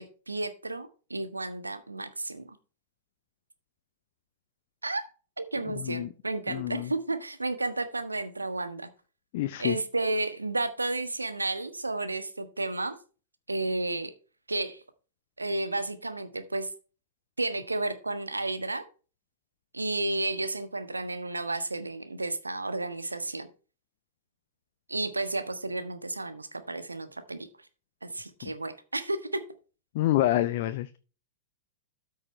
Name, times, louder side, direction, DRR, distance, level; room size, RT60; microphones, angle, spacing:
voice 1, 0.0-2.5 4.8-5.0 5.4-8.9 9.6-13.0 13.5-14.1 14.5-14.8 15.4-16.7 17.4-18.8 19.7-23.5 24.9-27.5 28.0-29.4, right 2 dB, 80° right, 1.3 m, -32 dB
voice 2, 5.8-6.1 6.5-6.9 9.3-9.8 28.4-28.5 29.9-31.0, left 14 dB, 50° left, 0.6 m, -27 dB
13.0 x 6.4 x 3.1 m
figure-of-eight pair, 100°, 0 cm